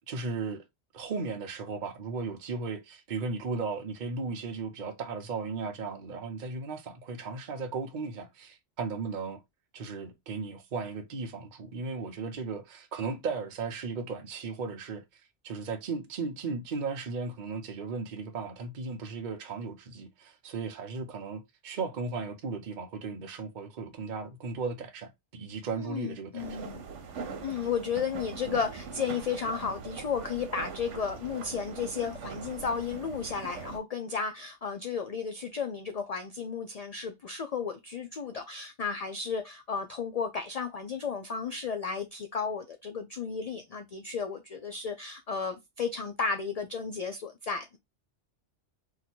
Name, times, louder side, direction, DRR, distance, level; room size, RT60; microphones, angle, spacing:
voice 1, 0.1-0.6 0.9-9.4 9.7-26.6, right 4 dB, 50° right, 0.7 m, -36 dB
voice 2, 25.7-26.8 27.4-47.8, left 6 dB, 65° left, 0.3 m, -33 dB
sound 1, 26.4-33.8, right 5 dB, 85° right, 1.1 m, -41 dB
2.7 x 2.5 x 4.2 m
omnidirectional pair, 1.2 m